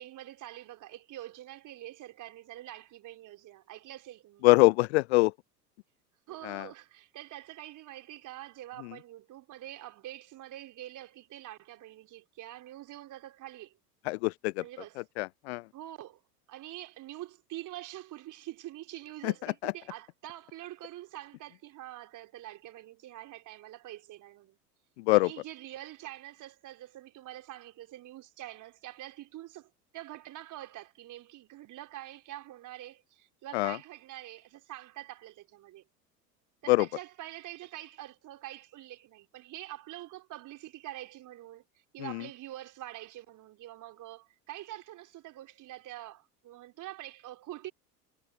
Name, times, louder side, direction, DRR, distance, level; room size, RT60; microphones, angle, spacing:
voice 1, 0.0-4.5 6.3-13.7 14.6-15.0 15.7-16.2 16.5-24.6 25.1-35.8 36.6-41.6 41.9-47.7, right 14 dB, 40° right, 4.5 m, -45 dB
voice 2, 4.4-5.3 6.4-6.7 8.8-8.9 14.0-14.6 15.2-15.7 19.2-19.3 19.6-19.7 25.0-25.3 33.5-33.8 36.7-36.9 42.0-42.2, left 23 dB, 45° left, 0.5 m, -24 dB
figure-of-eight pair, 80°, 48 cm